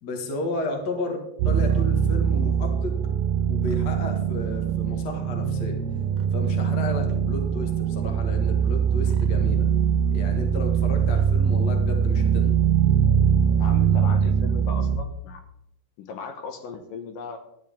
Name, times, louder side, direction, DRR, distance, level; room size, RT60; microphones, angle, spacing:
voice 1, 0.0-2.9 3.5-5.8 6.3-9.7 10.1-12.5, left 1 dB, 45° left, 3 dB, 1.4 m, -33 dB
sound 1, 1.4-15.0, right 7 dB, 85° right, 1.5 m, -22 dB
voice 2, 13.6-15.4 16.0-17.4, left 5 dB, 75° left, 6 dB, 2.6 m, -38 dB
12.5 x 9.9 x 3.6 m, 0.77 s
omnidirectional pair, 4.2 m